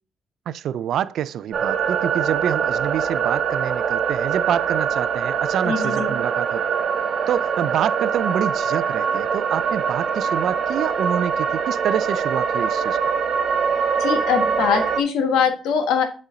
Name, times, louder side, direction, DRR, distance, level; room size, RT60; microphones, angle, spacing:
voice 1, 0.5-6.6 7.3-13.0, right 10 dB, 75° right, 0.3 m, -26 dB
sound 1, 1.5-15.0, right 6 dB, 60° right, 1.0 m, -23 dB
voice 2, 5.6-6.1 14.0-16.1, left 6 dB, 90° left, 1.4 m, -22 dB
8.1 x 4.3 x 3.8 m
cardioid pair, 90°, 0 cm